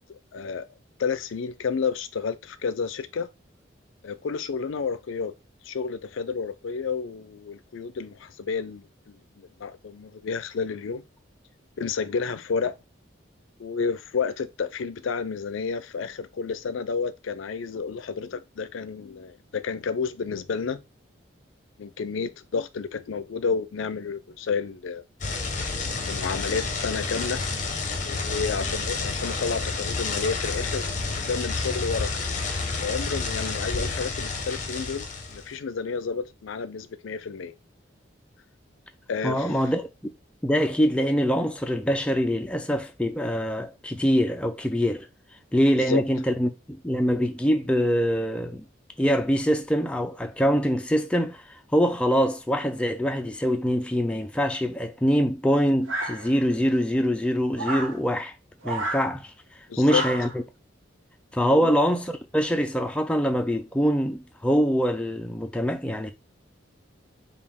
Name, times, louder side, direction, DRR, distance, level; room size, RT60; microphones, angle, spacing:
voice 1, 0.1-0.6 1.0-3.3 4.0-5.3 5.6-11.0 11.8-12.7 13.6-20.8 21.8-25.0 26.0-27.4 28.0-30.9 31.1-32.1 32.8-37.5 39.1-39.6 45.8-46.0 59.7-60.0 61.5-61.7, left 5 dB, 85° left, 0.4 m, -30 dB
sound 1, 25.2-35.5, left 3 dB, 40° left, 0.8 m, -30 dB
voice 2, 39.2-39.9 40.4-45.1 45.5-48.6 49.0-51.4 51.7-58.3 58.6-59.3 59.8-60.3 61.3-66.1, equal, 5° left, 0.4 m, -24 dB
sound 2, 55.9-56.6 57.6-58.0 58.6-59.1 59.9-60.4, right 2 dB, 90° right, 1.1 m, -31 dB
5.2 x 2.4 x 3.5 m
head